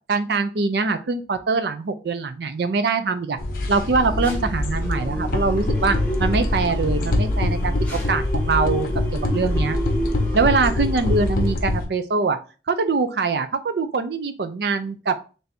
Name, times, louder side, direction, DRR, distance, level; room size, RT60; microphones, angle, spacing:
voice 1, 0.1-3.4 3.7-9.8 10.3-12.4 12.7-15.2, right 4 dB, 65° right, 9 dB, 0.5 m, -23 dB
sound 1, 3.4-11.9, left 1 dB, 50° left, 0.6 m, -24 dB
sound 2, 3.8-11.5, right 1 dB, 10° left, 1.1 m, -32 dB
3.4 x 2.6 x 4.1 m, 0.35 s
head